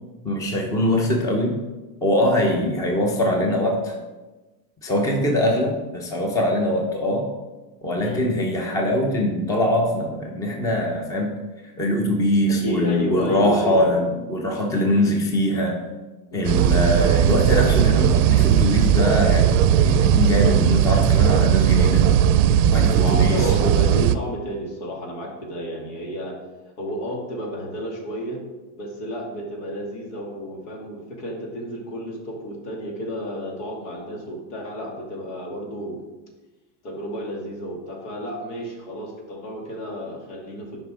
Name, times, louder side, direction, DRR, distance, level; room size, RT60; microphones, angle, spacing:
voice 1, 0.2-1.6 2.0-3.9 4.8-7.3 7.8-11.3 11.8-15.8 16.3-22.1 22.7-23.5, left 1 dB, 10° left, 1 dB, 0.6 m, -22 dB
voice 2, 12.5-13.9 16.3-16.7 23.0-26.4 26.8-28.4 28.8-36.0 36.8-40.7, equal, 75° left, 0 dB, 2.5 m, -31 dB
sound 1, 16.4-24.2, right 9 dB, 60° right, 0.6 m, -17 dB
9.4 x 5.2 x 4.7 m, 1.2 s
supercardioid pair, 160°, 45 cm